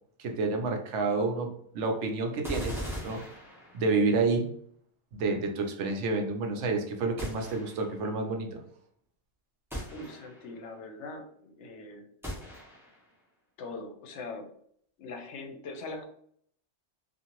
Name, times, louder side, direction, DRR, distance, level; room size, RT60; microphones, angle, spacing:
voice 1, 0.2-3.3 3.7-4.5 5.1-8.6, right 3 dB, 80° right, 4 dB, 0.9 m, -29 dB
sound 1, 2.4-4.1 7.2-8.1 9.7-10.6 12.2-13.1, equal, 5° right, 0.6 m, -39 dB
voice 2, 9.9-12.1 13.6-14.5 15.0-16.0, left 3 dB, 75° left, 5 dB, 0.9 m, -41 dB
2.7 x 2.4 x 2.9 m, 0.64 s
omnidirectional pair, 1.2 m